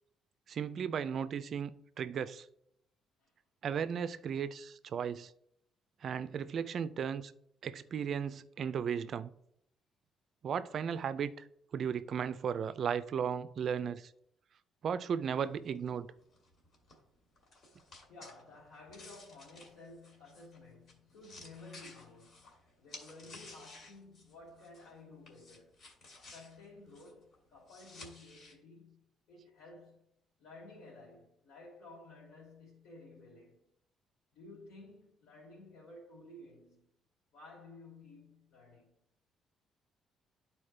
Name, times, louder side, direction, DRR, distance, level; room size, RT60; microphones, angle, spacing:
voice 1, 0.5-1.7 2.0-2.5 3.6-5.3 6.0-7.3 7.6-9.3 10.4-11.5 11.7-14.1 14.8-16.1, right 7 dB, 45° right, 0.4 m, -35 dB
sound 1, 15.3-25.0 25.3-28.5, left 2 dB, 50° left, 1.9 m, -55 dB
voice 2, 18.1-25.7 26.3-30.1 30.4-33.6 34.3-36.9 37.3-38.9, left 2 dB, 70° left, 2.7 m, -54 dB
11.5 x 4.3 x 3.3 m
cardioid pair, 160°, 0 cm